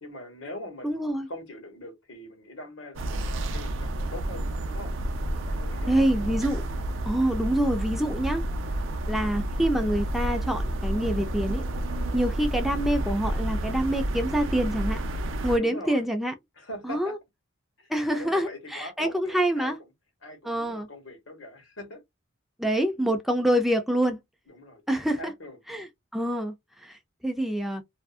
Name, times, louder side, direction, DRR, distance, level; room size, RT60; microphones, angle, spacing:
voice 1, 0.0-4.9 5.4-6.4 15.6-16.0 16.6-17.1 17.8-19.7 20.2-22.0 24.5-24.8 25.2-25.6, left 1 dB, 75° left, 1.1 m, -42 dB
voice 2, 0.8-1.3 5.9-6.6 7.0-8.4 9.1-11.6 12.1-15.0 15.4-16.3 16.8-17.2 17.9-19.8 20.4-20.9 22.6-24.2 24.9-25.3 25.7-25.9 26.1-26.5 26.8-27.8, right 1 dB, ahead, 0.3 m, -26 dB
sound 1, 3.0-15.6, right 1 dB, 70° right, 0.4 m, -30 dB
2.5 x 2.3 x 2.3 m
head